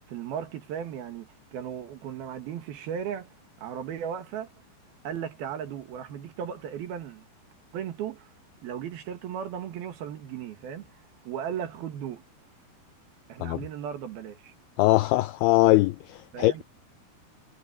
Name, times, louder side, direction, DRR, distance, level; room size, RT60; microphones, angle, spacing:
voice 1, 0.1-3.3 3.6-4.5 5.0-7.3 7.7-8.3 8.6-12.3 13.3-14.5 16.3-16.6, right 8 dB, 65° right, 3.3 m, -36 dB
voice 2, 14.8-16.6, left 18 dB, 85° left, 2.2 m, -22 dB
omnidirectional pair, 5.1 m